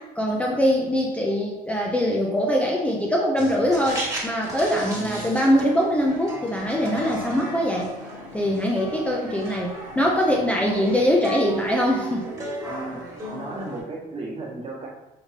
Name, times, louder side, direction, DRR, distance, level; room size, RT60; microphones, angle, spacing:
voice 1, 0.0-7.9 8.3-12.3, equal, 5° left, -2 dB, 0.4 m, -23 dB
sound 1, 3.4-13.8, right 2 dB, 20° right, 1.3 m, -35 dB
voice 2, 4.9-5.3 12.7-13.0 13.3-14.9, right 2 dB, 35° right, -3 dB, 1.1 m, -35 dB
5.0 x 2.6 x 3.3 m, 0.97 s
cardioid pair, 110°, 17 cm